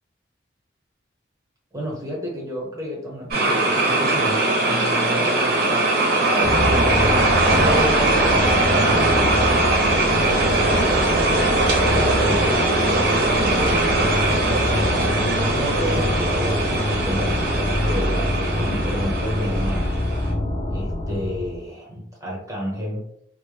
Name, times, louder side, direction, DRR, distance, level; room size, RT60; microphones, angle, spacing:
voice 1, 1.7-5.9 6.4-9.7 10.9-12.5 13.1-19.9 20.7-23.1, equal, 15° right, -3 dB, 0.8 m, -31 dB
sound 1, 3.3-20.3, right 2 dB, 50° right, 0.6 m, -21 dB
sound 2, 6.4-21.6, left 1 dB, 30° left, 0.4 m, -25 dB
2.1 x 2.1 x 3.2 m, 0.73 s
head